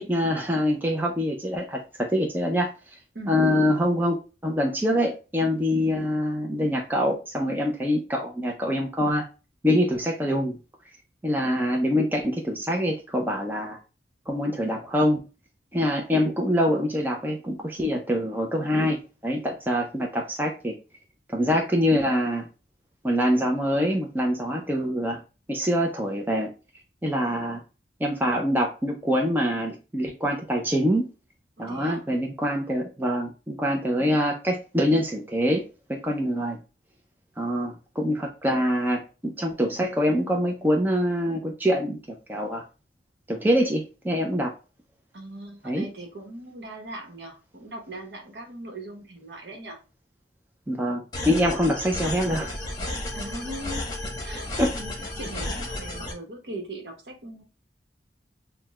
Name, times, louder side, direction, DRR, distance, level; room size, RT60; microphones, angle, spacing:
voice 1, 0.0-2.7 3.3-4.2 4.4-9.2 9.6-10.6 11.2-13.8 14.3-15.2 15.7-19.0 19.2-20.7 21.3-22.5 23.0-25.2 25.5-26.5 27.0-27.6 28.0-31.1 31.6-35.6 35.9-36.6 37.4-42.6 43.3-44.5 45.6-45.9 50.7-52.6 54.6-54.7, equal, 10° right, 0 dB, 0.5 m, -25 dB
voice 2, 31.6-32.1 45.1-49.8 53.1-54.0 54.2-57.4, right 1 dB, 65° right, 2 dB, 1.0 m, -39 dB
sound 1, 51.1-56.1, left 1 dB, 20° left, 1.0 m, -33 dB
6.0 x 2.1 x 2.3 m, 0.31 s
head